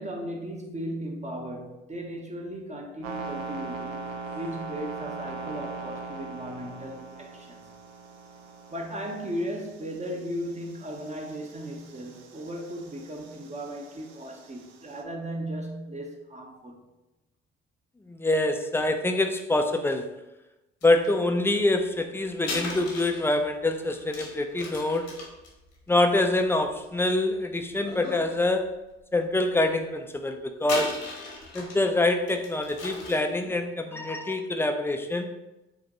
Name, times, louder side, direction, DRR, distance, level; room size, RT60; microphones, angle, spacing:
voice 1, 0.0-4.1 4.3-7.6 8.7-16.8, equal, 25° right, 1 dB, 0.7 m, -36 dB
sound 1, 3.0-15.0, right 4 dB, 80° right, 0.5 m, -41 dB
voice 2, 18.1-20.1 20.8-25.2 25.9-28.7 29.1-31.1 31.5-35.3, left 2 dB, 10° left, 6 dB, 0.3 m, -25 dB
sound 2, 20.8-21.1 22.4-27.1 27.7-28.3 28.7-28.8 30.6-31.9 32.3-33.4, left 3 dB, 70° left, 1.1 m, -37 dB
4.7 x 2.2 x 2.9 m, 0.99 s
hypercardioid pair, 50°, 30 cm